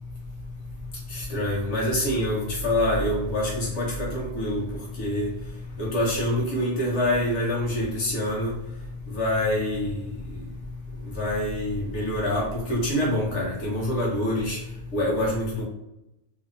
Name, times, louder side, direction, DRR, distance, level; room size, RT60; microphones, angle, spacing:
voice 1, 1.1-4.6 5.0-5.3 5.8-8.5 9.1-10.0 11.2-14.6 14.9-15.6, left 1 dB, 75° left, -5 dB, 1.1 m, -25 dB
2.8 x 2.0 x 2.4 m, 0.88 s
omnidirectional pair, 1.2 m